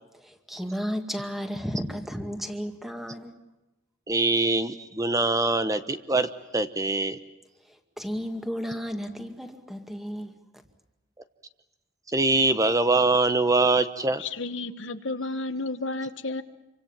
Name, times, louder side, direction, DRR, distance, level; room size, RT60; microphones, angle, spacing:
voice 1, 0.2-3.3 8.0-10.3, equal, ahead, 6 dB, 2.3 m, -33 dB
voice 2, 4.1-7.2 12.1-14.2, right 2 dB, 20° right, 10 dB, 1.0 m, -23 dB
voice 3, 14.2-16.4, left 3 dB, 85° left, 10 dB, 1.4 m, -32 dB
27.0 x 25.0 x 7.4 m, 0.98 s
head